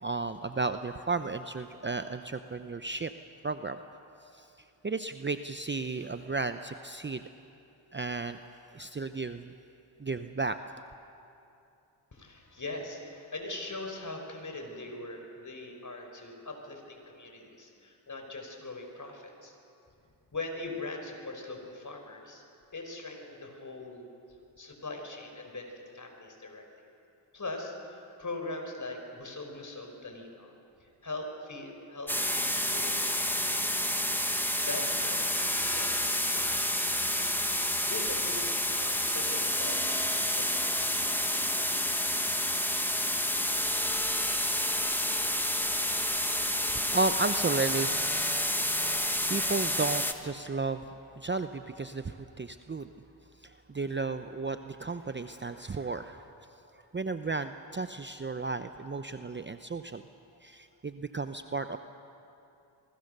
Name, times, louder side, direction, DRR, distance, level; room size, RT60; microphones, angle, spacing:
voice 1, 0.0-3.1 3.4-3.8 4.3-4.5 4.8-7.2 7.9-8.4 8.7-9.5 10.0-10.8 46.7-52.9 53.4-60.0 60.4-61.8, right 3 dB, 25° right, 9 dB, 0.8 m, -34 dB
voice 2, 12.1-19.5 20.3-22.4 22.7-24.1 24.6-26.7 27.3-30.5 30.8-34.0 34.3-37.1 37.6-41.7, left 2 dB, 35° left, 3 dB, 5.6 m, -41 dB
sound 1, 32.1-50.1, left 1 dB, 5° left, 1.7 m, -29 dB
27.0 x 22.5 x 6.8 m, 2.7 s
cardioid pair, 55°, 49 cm